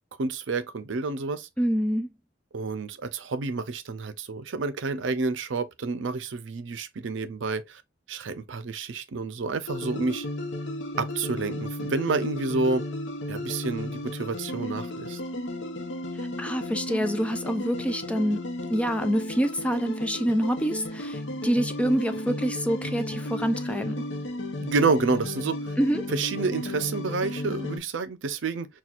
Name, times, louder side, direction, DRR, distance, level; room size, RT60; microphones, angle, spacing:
voice 1, 0.2-1.5 2.5-7.8 8.1-10.3 11.0-12.8 13.3-15.2 24.6-25.7 26.1-28.7, right 4 dB, 80° right, 0.5 m, -29 dB
voice 2, 1.6-2.1 16.4-18.4 18.7-24.0 25.8-26.1, equal, 5° left, 0.4 m, -26 dB
sound 1, 9.7-27.8, left 1 dB, 75° left, 0.7 m, -34 dB
5.9 x 2.3 x 2.4 m
head